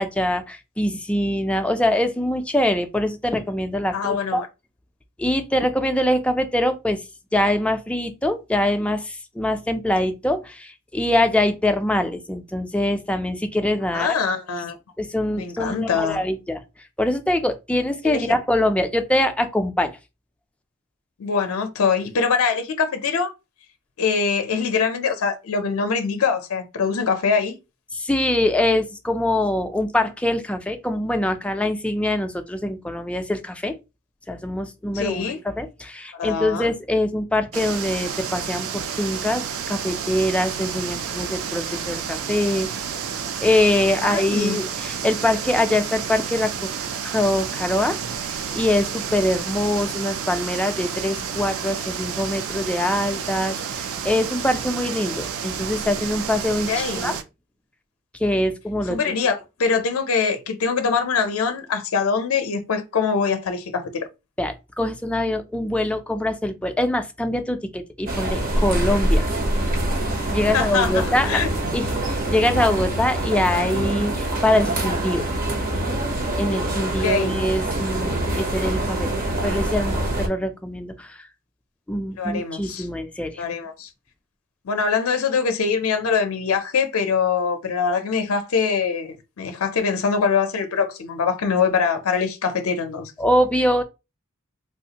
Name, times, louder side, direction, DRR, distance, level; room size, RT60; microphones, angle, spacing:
voice 1, 0.0-4.4 5.2-7.0 7.3-14.1 15.0-16.6 17.0-19.9 27.9-33.7 34.3-42.7 43.4-46.7 47.0-57.2 58.2-59.0 64.4-69.3 70.3-71.4 71.7-75.2 76.4-79.1 79.4-81.2 81.9-83.4 93.2-93.8, left 1 dB, 5° left, 0.3 m, -23 dB
voice 2, 3.9-4.5 13.9-14.7 15.3-16.2 18.0-18.3 21.2-23.3 24.0-27.6 34.9-35.4 36.1-36.7 44.0-44.6 56.7-57.1 58.9-64.1 70.5-71.5 77.0-77.4 82.2-82.9 83.4-83.9 84.6-93.1, left 5 dB, 70° left, 0.5 m, -23 dB
sound 1, 37.5-57.2, right 7 dB, 70° right, 0.4 m, -30 dB
sound 2, 68.1-80.3, right 1 dB, 40° right, 0.7 m, -25 dB
3.4 x 2.4 x 2.8 m
head